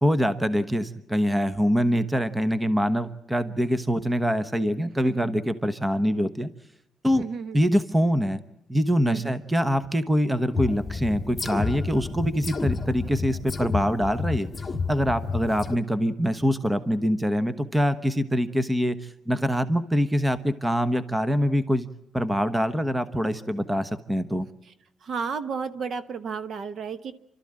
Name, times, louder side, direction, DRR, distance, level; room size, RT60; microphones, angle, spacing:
voice 1, 0.0-6.5 7.0-7.2 7.5-8.4 8.7-14.5 14.9-19.0 19.3-21.9 22.1-24.5, equal, 10° right, 13 dB, 1.0 m, -24 dB
voice 2, 5.0-5.3 7.2-7.6 9.1-9.3 25.0-27.1, right 5 dB, 55° right, 12 dB, 1.1 m, -32 dB
sound 1, 10.5-15.8, left 4 dB, 15° left, 1.8 m, -30 dB
28.5 x 13.0 x 8.8 m, 0.85 s
cardioid pair, 125°, 0 cm